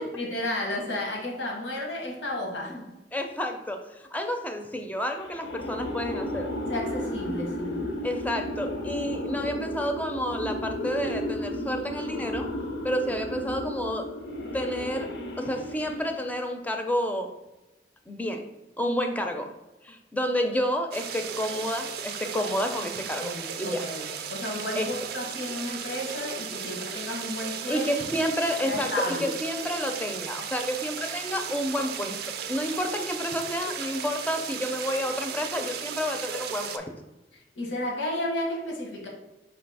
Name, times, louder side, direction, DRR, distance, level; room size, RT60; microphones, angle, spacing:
voice 1, 0.0-2.9 6.6-7.8 23.2-27.9 28.6-29.3 37.5-39.1, left 1 dB, 85° left, 0 dB, 1.1 m, -32 dB
voice 2, 3.1-6.5 8.0-12.4 12.8-14.1 14.5-15.1 15.4-17.3 18.1-18.4 18.8-19.5 19.8-23.3 23.6-23.8 24.7-24.9 27.7-36.9, equal, 10° left, 4 dB, 0.4 m, -30 dB
sound 1, 5.2-16.3, left 1 dB, 65° left, 0.5 m, -33 dB
sound 2, 20.9-36.8, right 7 dB, 55° right, 0.4 m, -36 dB
4.1 x 2.7 x 4.6 m, 1.0 s
head